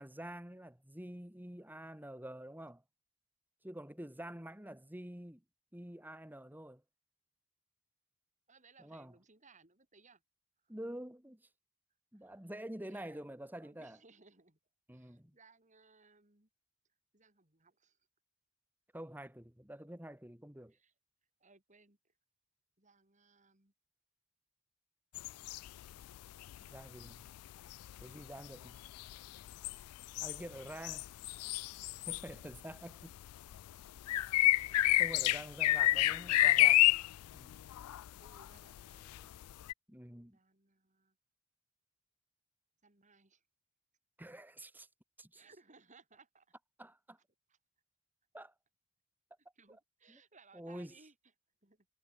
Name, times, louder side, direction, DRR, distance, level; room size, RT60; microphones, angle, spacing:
voice 1, 0.0-2.8 3.6-5.4 5.7-6.8 8.8-9.1 10.7-11.5 12.1-14.0 14.9-15.4 18.9-20.8 26.7-27.3 28.0-28.8 30.2-31.1 32.1-33.2 35.0-37.0 37.3-37.6 39.9-40.4 44.2-44.9 45.2-45.4 46.8-47.2 48.3-48.5 50.1-50.2 50.5-50.9, right 1 dB, 10° right, 2.0 m, -47 dB
voice 2, 8.5-10.2 10.6-10.7 12.1-12.5 12.8-13.3 13.6-14.6 14.9-16.5 17.1-18.0 20.7-20.9 21.4-22.1 22.8-23.7 26.6-27.4 35.4-36.9 38.2-39.5 40.3-41.2 42.8-43.4 45.3-46.6 47.5-47.6 49.6-51.2 51.6-51.9, right 4 dB, 35° right, 3.9 m, -65 dB
sound 1, 25.2-26.2 26.4-32.7 33.0-39.7, left 16 dB, 85° left, 0.3 m, -30 dB
head